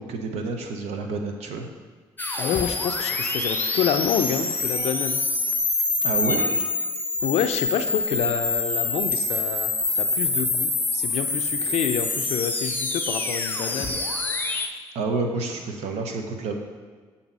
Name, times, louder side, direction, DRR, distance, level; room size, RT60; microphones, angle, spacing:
voice 1, 0.0-1.7 6.0-6.5 14.9-16.6, right 3 dB, 75° right, 4 dB, 0.8 m, -29 dB
sound 1, 2.2-14.7, left 3 dB, 15° left, 0.6 m, -26 dB
sound 2, 2.3-2.7 4.7-5.2 6.2-6.7 8.4-8.5 9.0-9.5, equal, 15° right, 1.4 m, -36 dB
voice 2, 2.4-5.2 7.2-14.0, left 8 dB, 70° left, 9 dB, 0.4 m, -28 dB
7.0 x 2.8 x 5.3 m, 1.5 s
supercardioid pair, 55°, 11 cm